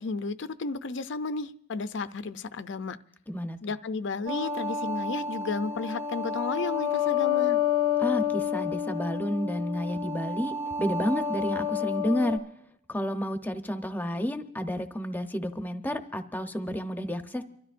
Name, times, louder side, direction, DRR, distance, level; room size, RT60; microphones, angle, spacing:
voice 1, 0.0-3.0 3.6-7.6, left 4 dB, 65° left, 0.6 m, -33 dB
voice 2, 3.3-3.6 8.0-12.4 12.9-17.4, equal, 10° left, 0.8 m, -31 dB
sound 1, 4.3-12.4, left 7 dB, 15° right, 1.1 m, -29 dB
29.5 x 13.0 x 2.5 m
head